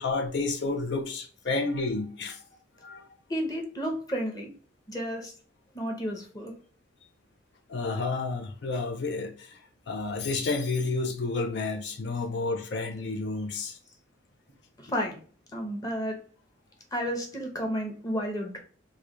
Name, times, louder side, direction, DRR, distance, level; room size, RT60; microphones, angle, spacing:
voice 1, 0.0-2.4 2.8-3.1 7.7-13.8, left 3 dB, 60° left, 0.5 m, -30 dB
voice 2, 3.3-4.5 4.9-5.3 5.7-6.5 14.8-15.2 15.5-16.2 16.9-18.6, equal, 20° left, 0.8 m, -32 dB
3.1 x 2.2 x 3.7 m
head